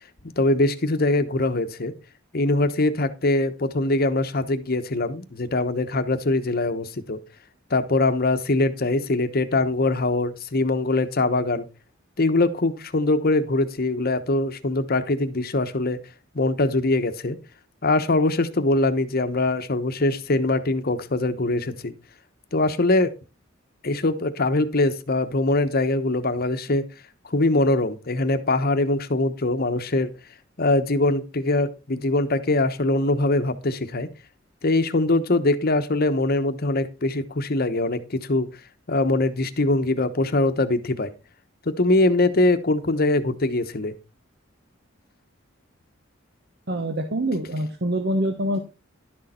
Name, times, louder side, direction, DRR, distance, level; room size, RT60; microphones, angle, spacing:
voice 1, 0.4-1.9 2.3-7.2 7.7-11.7 12.2-16.0 16.3-17.4 17.8-21.9 22.5-23.1 23.8-26.9 27.2-30.1 30.6-34.1 34.6-38.5 38.9-41.1 41.7-43.9, left 2 dB, 50° left, 10 dB, 1.0 m, -22 dB
voice 2, 46.7-48.6, right 1 dB, 60° right, 6 dB, 1.2 m, -25 dB
11.5 x 6.6 x 4.3 m, 0.30 s
head